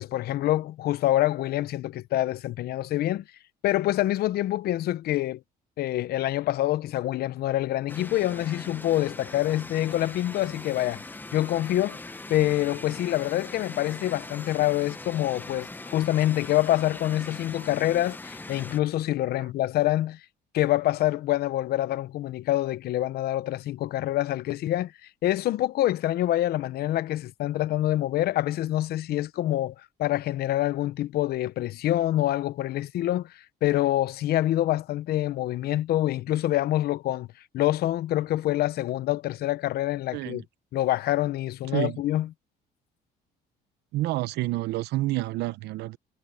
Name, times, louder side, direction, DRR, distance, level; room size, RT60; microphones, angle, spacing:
voice 1, 0.0-3.2 3.6-5.4 5.8-11.0 11.3-12.0 12.3-20.2 20.5-24.9 25.2-33.3 33.6-37.3 37.5-40.4 40.7-42.3, left 14 dB, 70° left, 0.8 m, -26 dB
sound 1, 7.9-18.8, left 2 dB, 10° left, 0.9 m, -41 dB
voice 2, 40.1-40.4 41.7-42.0 43.9-46.0, right 17 dB, 80° right, 0.9 m, -28 dB
cardioid pair, 110°, 17 cm